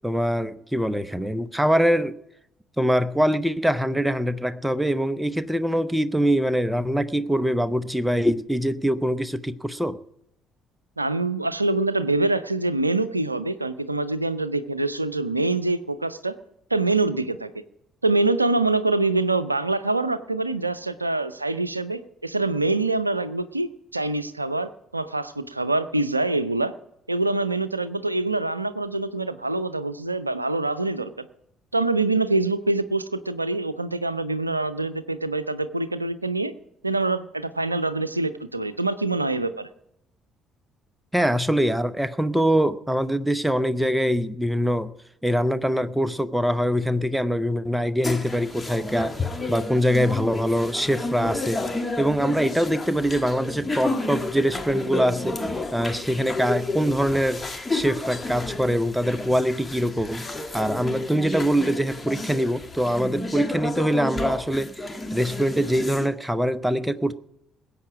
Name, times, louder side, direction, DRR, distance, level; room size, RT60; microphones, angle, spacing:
voice 1, 0.0-2.1 2.8-10.0 41.1-44.9 45.2-49.2 49.5-51.7 52.0-55.4 55.7-57.4 57.7-60.3 60.5-67.1, equal, 5° right, 0.8 m, -23 dB
voice 2, 11.0-16.3 16.7-17.5 18.0-26.7 27.1-31.3 31.7-36.5 36.8-39.7, right 2 dB, 90° right, 0.5 m, -25 dB
sound 1, 48.0-66.1, left 2 dB, 20° left, 1.6 m, -31 dB
20.0 x 8.5 x 4.9 m
figure-of-eight pair, 50°, 0 cm